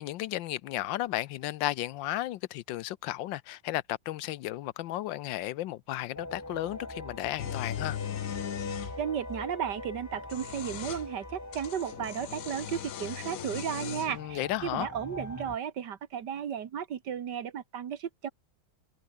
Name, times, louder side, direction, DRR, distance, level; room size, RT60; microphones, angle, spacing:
voice 1, 0.0-8.0 14.1-14.9, left 15 dB, 90° left, 1.4 m, -34 dB
sound 1, 6.1-15.6, left 1 dB, 10° left, 1.5 m, -43 dB
sound 2, 7.4-9.0 10.1-11.1 11.5-14.2, left 11 dB, 60° left, 1.0 m, -38 dB
voice 2, 9.0-18.3, right 8 dB, 65° right, 1.9 m, -34 dB
omnidirectional pair, 2.0 m